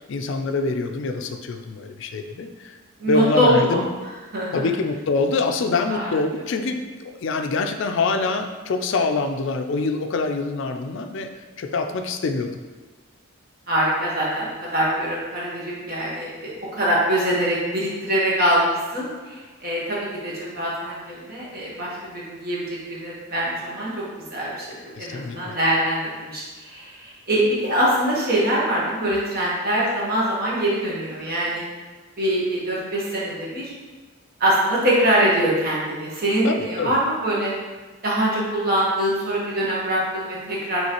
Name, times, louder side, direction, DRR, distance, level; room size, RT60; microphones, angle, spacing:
voice 1, 0.1-2.8 3.0-3.9 4.5-11.3 11.6-12.5 25.0-25.6 36.4-37.0, left 3 dB, 55° left, 6 dB, 0.4 m, -25 dB
voice 2, 3.0-3.8 4.3-4.5 5.9-6.1 13.7-24.0 24.3-31.6 32.2-33.7 34.4-37.5 38.0-40.9, right 1 dB, 45° right, -6 dB, 1.2 m, -23 dB
5.4 x 3.2 x 3.0 m, 1.3 s
head